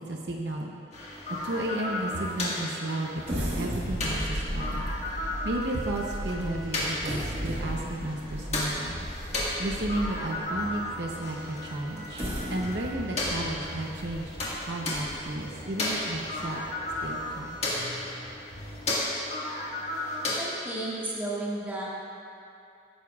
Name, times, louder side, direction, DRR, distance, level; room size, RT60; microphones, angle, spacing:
voice 1, 0.1-0.7 1.1-4.8 5.2-9.1 9.6-14.4 14.6-16.6 17.0-17.6, right 1 dB, 60° right, 0 dB, 0.8 m, -33 dB
sound 1, 0.9-20.4, left 1 dB, 35° left, 1.8 m, -34 dB
sound 2, 3.2-10.4 11.0-11.1 11.9-15.5 15.9-16.0 16.5-16.7, equal, 30° right, 1.6 m, -35 dB
sound 3, 5.1-18.8, equal, 70° left, 2.4 m, -46 dB
voice 2, 20.4-21.9, right 2 dB, 10° right, -7 dB, 1.7 m, -33 dB
16.5 x 9.7 x 2.4 m, 2.5 s
head